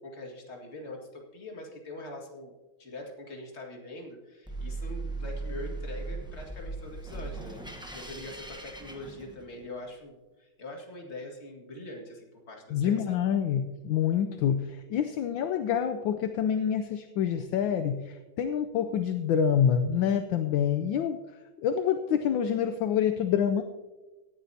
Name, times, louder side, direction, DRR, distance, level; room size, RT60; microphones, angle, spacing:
voice 1, 0.0-2.5 2.8-13.2, left 1 dB, 30° left, 0 dB, 2.1 m, -43 dB
sound 1, 4.5-9.8, right 3 dB, 5° right, 0.4 m, -38 dB
voice 2, 12.7-21.2 21.6-23.6, left 8 dB, 75° left, 9 dB, 1.3 m, -27 dB
17.5 x 11.0 x 2.8 m, 1.2 s
omnidirectional pair, 2.3 m